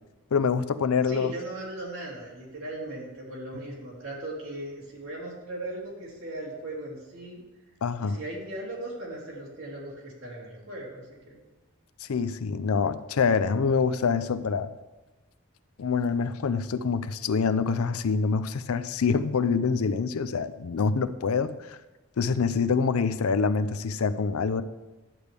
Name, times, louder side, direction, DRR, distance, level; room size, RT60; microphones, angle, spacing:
voice 1, 0.3-1.3 7.8-8.2 12.0-14.7 15.8-21.8 22.2-24.6, left 5 dB, 90° left, 13 dB, 0.5 m, -26 dB
voice 2, 1.0-7.4 8.0-11.4, right 1 dB, 65° right, -4 dB, 2.7 m, -38 dB
11.0 x 8.2 x 3.4 m, 1.1 s
head